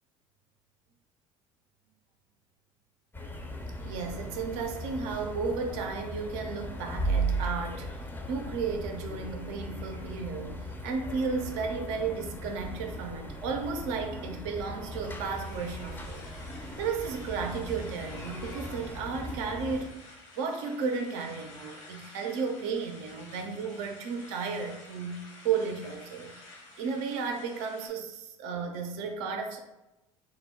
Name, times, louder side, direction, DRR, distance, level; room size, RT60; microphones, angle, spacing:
sound 1, 3.1-19.9, right 1 dB, 10° left, 0.5 m, -37 dB
voice 1, 3.8-8.0 8.3-16.2 16.8-20.0 20.4-29.6, right 5 dB, 65° right, 0.5 m, -34 dB
sound 2, 14.8-27.9, left 2 dB, 70° left, 1.0 m, -51 dB
3.1 x 2.0 x 3.5 m
hypercardioid pair, 65°, 17 cm